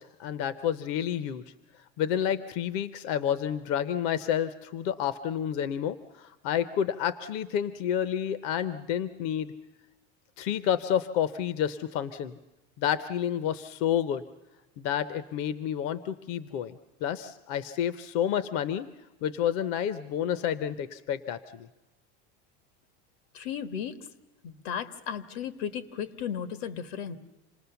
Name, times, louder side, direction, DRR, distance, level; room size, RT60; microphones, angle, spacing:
voice 1, 0.0-1.4 2.0-9.5 10.4-12.4 12.8-14.2 14.8-18.9 19.2-21.7, left 9 dB, 50° left, 15 dB, 0.7 m, -30 dB
voice 2, 23.3-24.0 24.4-27.1, left 8 dB, 80° left, 13 dB, 1.5 m, -35 dB
27.0 x 19.5 x 6.9 m, 1.0 s
cardioid pair, 170°, 31 cm